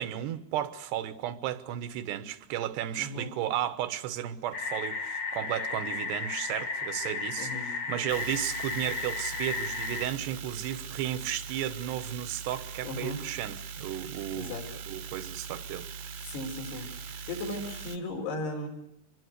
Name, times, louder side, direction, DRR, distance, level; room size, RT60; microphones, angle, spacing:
voice 1, 0.0-14.6 14.9-16.2, right 11 dB, 85° right, 3.2 m, -34 dB
voice 2, 3.0-3.3 7.4-7.7 12.8-13.2 14.3-14.7 16.3-16.9 17.3-18.7, left 2 dB, 75° left, 6.7 m, -36 dB
sound 1, 4.5-10.1, left 4 dB, 45° left, 2.3 m, -34 dB
sound 2, 8.1-18.0, right 6 dB, 65° right, 1.6 m, -41 dB
25.0 x 22.0 x 8.1 m
omnidirectional pair, 4.7 m